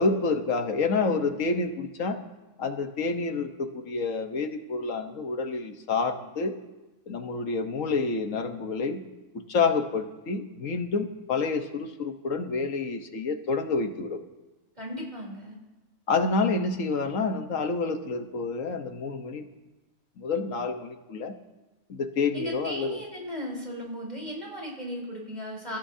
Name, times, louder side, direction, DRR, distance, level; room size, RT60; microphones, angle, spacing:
voice 1, 0.0-2.2 2.6-6.5 7.1-9.0 9.3-14.2 16.1-19.4 20.2-21.4 21.9-23.0, left 4 dB, 80° left, 6 dB, 1.5 m, -28 dB
voice 2, 14.8-15.6 22.3-25.8, equal, 30° right, -3 dB, 3.7 m, -36 dB
28.5 x 14.5 x 2.8 m, 1.1 s
omnidirectional pair, 1.3 m